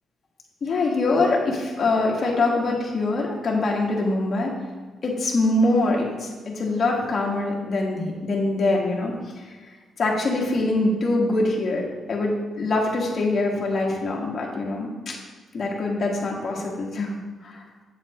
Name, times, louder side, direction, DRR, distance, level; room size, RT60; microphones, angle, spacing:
voice 1, 0.6-4.6 5.0-9.6 10.0-15.2 15.5-17.1 17.4-17.6, left 2 dB, 45° left, -2 dB, 1.7 m, -24 dB
7.9 x 7.3 x 3.1 m, 1.4 s
cardioid pair, 120°, 0 cm